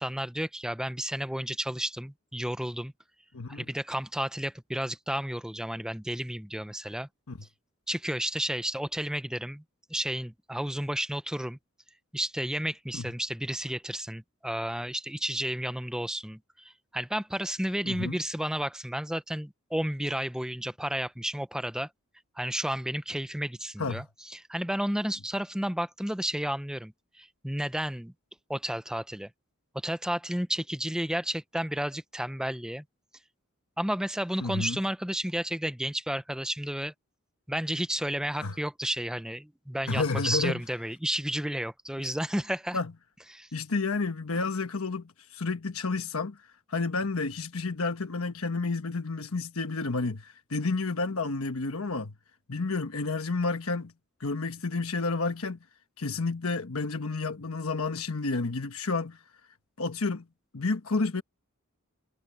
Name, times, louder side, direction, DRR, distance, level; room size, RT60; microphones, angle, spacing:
voice 1, 0.0-2.9 3.5-7.1 7.9-9.6 9.9-11.6 12.1-16.4 16.6-21.9 22.4-28.1 28.5-29.3 29.8-32.8 33.8-36.9 37.5-42.8 43.3-43.5, right 1 dB, 5° right, 0.7 m, -32 dB
voice 2, 3.3-3.6 7.3-7.4 12.9-13.0 17.8-18.2 23.8-24.0 34.4-34.8 38.4-38.6 39.9-40.6 42.0-42.1 42.7-42.9 43.5-46.4 46.7-52.1 52.5-53.9 54.2-55.6 56.0-59.2 59.8-60.2 60.5-61.2, left 3 dB, 80° left, 1.1 m, -30 dB
head